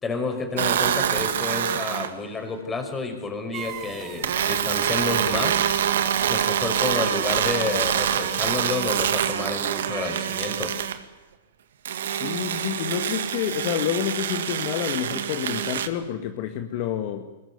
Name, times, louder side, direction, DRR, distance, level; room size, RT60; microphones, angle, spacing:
voice 1, 0.0-5.6 6.3-10.8, left 3 dB, 15° left, 5 dB, 5.5 m, -30 dB
sound 1, 0.6-2.1 4.2-11.0 11.8-15.9, right 9 dB, 75° right, 2.0 m, -25 dB
sound 2, 3.5-10.0, right 11 dB, 35° right, 2.0 m, -42 dB
voice 2, 12.1-17.3, left 10 dB, 50° left, 6 dB, 1.9 m, -28 dB
22.0 x 20.5 x 9.7 m, 1.1 s
hypercardioid pair, 130°, 0 cm